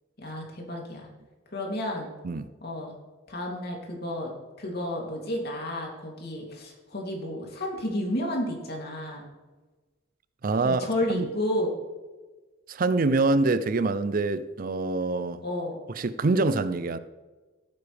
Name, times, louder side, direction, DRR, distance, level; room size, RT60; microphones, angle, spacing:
voice 1, 0.2-1.1 1.5-2.1 2.6-2.9 3.3-4.3 4.6-9.2 10.6-11.7 15.4-15.8, left 1 dB, 55° left, 2.9 m, -31 dB
voice 2, 10.4-11.3 12.7-15.4 16.0-17.0, right 3 dB, 45° right, 0.5 m, -25 dB
16.5 x 9.2 x 3.4 m
head